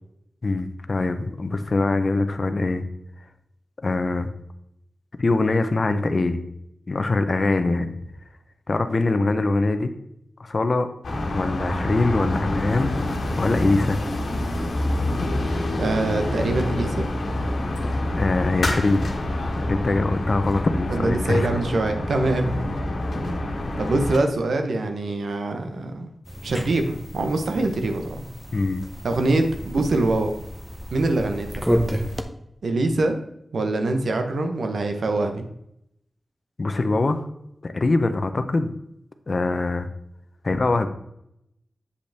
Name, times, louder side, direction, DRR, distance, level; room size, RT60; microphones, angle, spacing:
voice 1, 0.4-2.8 3.8-4.3 5.2-6.4 6.9-7.9 8.7-9.9 10.4-10.9 11.3-14.0 18.1-19.0 19.6-21.6 28.5-28.8 36.6-37.2 37.6-38.7 39.3-39.9 40.4-40.9, left 2 dB, 50° left, 9 dB, 0.7 m, -23 dB
sound 1, 11.0-24.2, left 1 dB, 90° left, 1.4 m, -27 dB
voice 2, 15.8-17.0 20.9-22.7 23.2-26.1 26.4-28.3 29.0-30.3 30.9-31.6 32.6-33.2 33.5-35.4, right 2 dB, 85° right, 6 dB, 0.9 m, -24 dB
sound 2, 26.2-32.2, equal, 5° right, 0.7 m, -30 dB
8.2 x 5.3 x 3.4 m, 0.78 s
wide cardioid pair, 85°, 0 cm